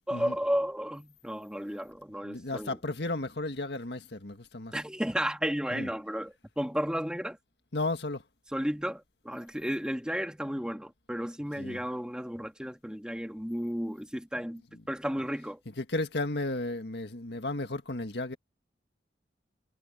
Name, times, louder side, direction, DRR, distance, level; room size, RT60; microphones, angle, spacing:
voice 1, 0.1-2.8 4.7-7.4 8.5-14.6 14.9-15.6, equal, 5° right, 2.2 m, -33 dB
voice 2, 2.2-4.7 5.7-5.9 7.7-8.2 11.6-11.8 15.8-18.4, left 2 dB, 70° left, 1.8 m, -34 dB
head